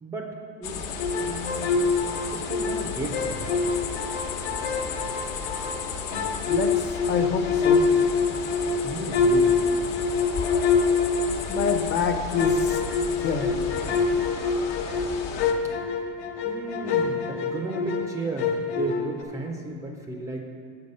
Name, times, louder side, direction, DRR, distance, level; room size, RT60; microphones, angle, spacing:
voice 1, 0.0-0.8 1.2-1.8 2.3-3.7 8.8-9.6 12.9-13.0 14.6-14.8 16.4-20.4, right 2 dB, 10° right, 2 dB, 0.4 m, -34 dB
sound 1, 0.6-15.5, left 6 dB, 55° left, 1.0 m, -34 dB
sound 2, 0.9-2.8 3.1-5.8 6.1-11.9 12.4-18.1 18.4-19.2, left 4 dB, 75° left, 1.3 m, -25 dB
voice 2, 6.5-7.9 11.5-12.8 13.2-14.0, left 5 dB, 30° left, 5 dB, 0.7 m, -28 dB
7.2 x 6.8 x 5.3 m, 2.1 s
supercardioid pair, 145°, 33 cm